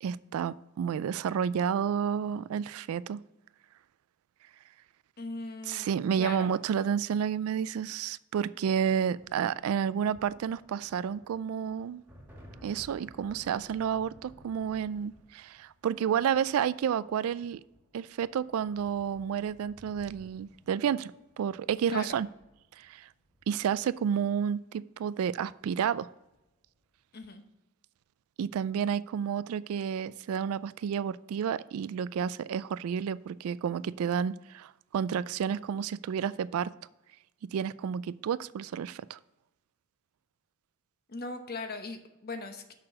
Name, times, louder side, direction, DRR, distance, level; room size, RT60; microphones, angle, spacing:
voice 1, 0.0-3.2 5.7-12.0 12.6-17.6 17.9-22.3 22.8-23.1 23.5-26.1 28.4-36.7 37.5-39.2, right 8 dB, 70° right, 19 dB, 0.3 m, -30 dB
voice 2, 5.2-6.5 21.9-22.2 27.1-27.4 41.1-42.7, left 3 dB, 45° left, 7 dB, 0.9 m, -39 dB
sound 1, 8.7-24.4 25.6-25.9 26.1-26.8, equal, 10° right, 1.8 m, -57 dB
6.7 x 5.8 x 6.3 m, 0.93 s
head